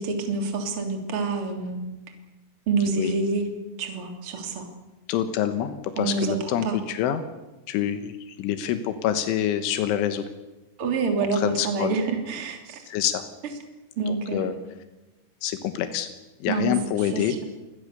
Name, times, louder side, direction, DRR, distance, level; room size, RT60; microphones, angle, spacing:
voice 1, 0.0-1.8 2.7-3.5 3.8-4.7 6.0-6.8 10.8-12.8 14.0-14.5 16.5-17.4, right 4 dB, 30° right, 4 dB, 3.4 m, -27 dB
voice 2, 5.1-7.2 7.7-10.2 11.2-12.0 12.9-13.2 14.1-14.5 15.4-16.1 16.4-17.4, left 10 dB, 90° left, 9 dB, 3.7 m, -26 dB
29.0 x 21.5 x 6.9 m, 1.1 s
omnidirectional pair, 5.4 m